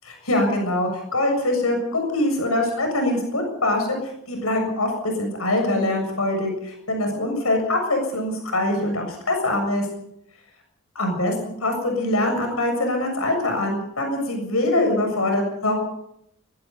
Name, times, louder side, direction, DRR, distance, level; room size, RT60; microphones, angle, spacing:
voice 1, 0.0-9.9 11.0-15.7, left 1 dB, 85° left, 3 dB, 7.1 m, -23 dB
22.5 x 22.0 x 5.4 m, 0.74 s
head